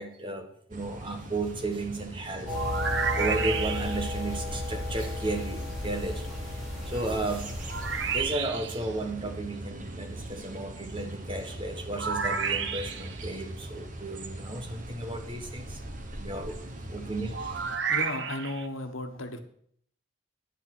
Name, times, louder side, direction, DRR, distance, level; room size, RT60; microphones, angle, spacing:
voice 1, 0.0-2.6 3.2-6.2 6.8-7.5 8.1-15.8 16.1-16.6 16.9-17.8, right 2 dB, 25° right, 5 dB, 1.3 m, -34 dB
sound 1, 0.7-17.8, right 1 dB, 40° right, 1.3 m, -41 dB
sound 2, 2.5-8.2, left 2 dB, ahead, 3.4 m, -34 dB
sound 3, 2.5-4.2 7.7-8.9 12.0-13.2 17.3-18.7, right 6 dB, 60° right, 0.9 m, -31 dB
voice 2, 17.8-19.4, left 2 dB, 80° left, 6 dB, 1.4 m, -35 dB
10.0 x 8.9 x 6.2 m, 0.63 s
head